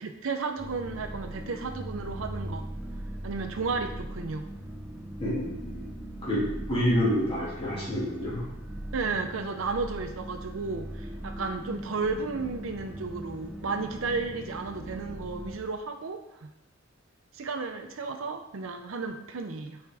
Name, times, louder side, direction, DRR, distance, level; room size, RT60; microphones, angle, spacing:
voice 1, 0.0-2.6 3.2-4.4 8.9-16.5 17.3-19.8, right 4 dB, 75° right, 5 dB, 0.6 m, -33 dB
sound 1, 0.6-15.6, right 1 dB, 10° right, 0.7 m, -39 dB
voice 2, 5.2-5.8 6.2-8.4, equal, 30° left, -7 dB, 2.1 m, -28 dB
8.1 x 4.5 x 3.4 m, 0.87 s
head